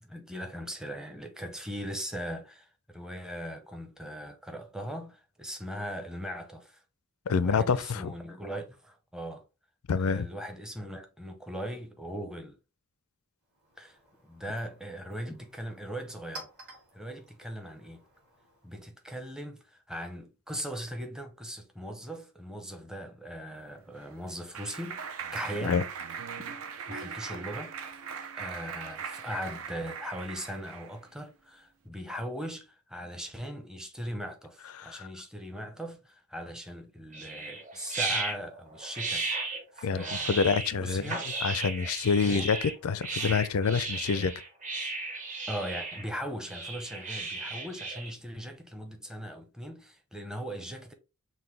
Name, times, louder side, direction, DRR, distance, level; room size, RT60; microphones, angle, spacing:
voice 1, 0.0-6.8 7.3-9.4 10.0-12.6 13.8-14.0 14.2-16.5 16.9-18.1 18.6-25.0 25.3-25.9 26.4-26.5 26.9-28.0 28.3-41.3 42.2-42.5 45.5-50.9, equal, 5° right, 0.6 m, -39 dB
voice 2, 7.3-8.1 9.9-10.3 25.6-25.8 34.8-35.1 39.8-42.6 42.8-44.3, left 5 dB, 80° left, 0.4 m, -27 dB
Chink clink, 13.4-18.9, right 2 dB, 55° right, 2.4 m, -52 dB
Clapping, 23.7-31.0, right 6 dB, 70° right, 0.6 m, -40 dB
sound 1, 37.1-48.1, right 3 dB, 35° right, 1.0 m, -35 dB
5.8 x 2.2 x 3.2 m
head